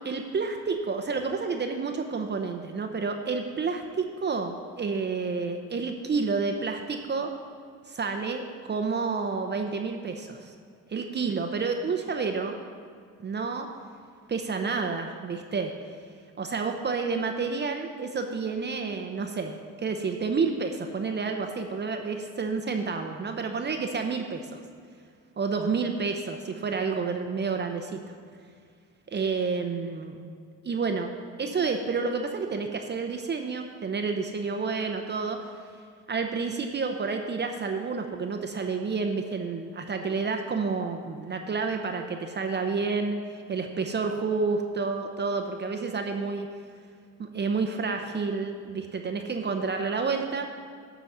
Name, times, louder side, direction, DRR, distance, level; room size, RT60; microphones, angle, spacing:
voice 1, 0.0-7.3 7.9-10.5 10.9-12.6 13.2-13.7 14.3-15.7 16.4-24.6 25.4-28.1 29.1-30.3 30.6-31.1 31.4-35.5 36.1-43.2 43.5-46.5 47.2-50.5, right 4 dB, 35° right, 4 dB, 0.7 m, -29 dB
10.5 x 4.1 x 7.3 m, 2.1 s
cardioid pair, 90°, 30 cm